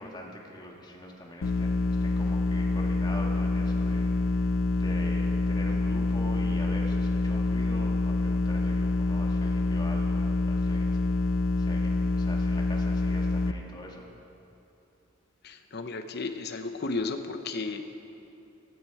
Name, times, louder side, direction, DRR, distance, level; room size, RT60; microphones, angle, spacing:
voice 1, 0.0-11.3 11.6-14.1, left 1 dB, 20° left, -1 dB, 1.8 m, -43 dB
sound 1, 1.4-13.5, left 2 dB, 85° left, 0.6 m, -26 dB
voice 2, 15.4-17.9, left 3 dB, 55° left, 7 dB, 0.9 m, -33 dB
17.0 x 14.0 x 4.9 m, 2.8 s
head